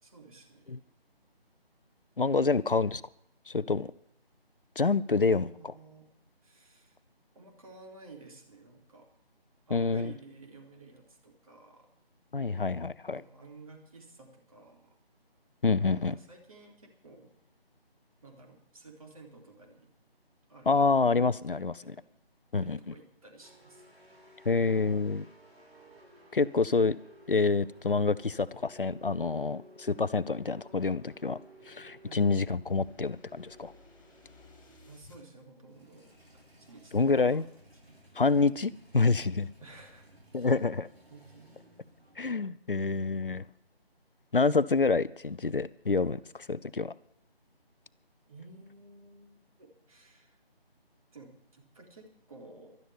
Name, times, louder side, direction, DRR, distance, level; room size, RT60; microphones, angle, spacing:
voice 1, 0.0-0.8 5.3-6.1 6.4-7.0 7.4-9.1 9.7-11.9 13.1-15.0 16.1-17.3 18.2-19.9 20.5-21.0 21.5-22.1 22.6-23.9 32.0-32.3 34.9-36.2 36.5-37.5 37.9-38.0 39.6-40.2 41.1-41.6 44.5-44.7 48.3-50.4 51.1-52.8, right 3 dB, 35° right, 3.5 m, -53 dB
voice 2, 2.2-3.0 3.5-3.9 4.8-5.5 9.7-10.1 12.3-13.2 15.6-16.2 20.7-21.9 22.5-22.8 24.5-25.2 26.3-27.0 27.3-31.4 31.7-33.7 36.9-37.5 38.2-39.5 40.3-40.9 42.2-43.4 44.3-46.9, left 4 dB, 60° left, 0.8 m, -27 dB
sound 1, 23.4-34.9 35.7-42.3, equal, 80° right, 7.0 m, -57 dB
sound 2, 31.4-35.2, left 4 dB, 20° left, 3.0 m, -61 dB
12.5 x 12.0 x 9.7 m
figure-of-eight pair, 160°, 31 cm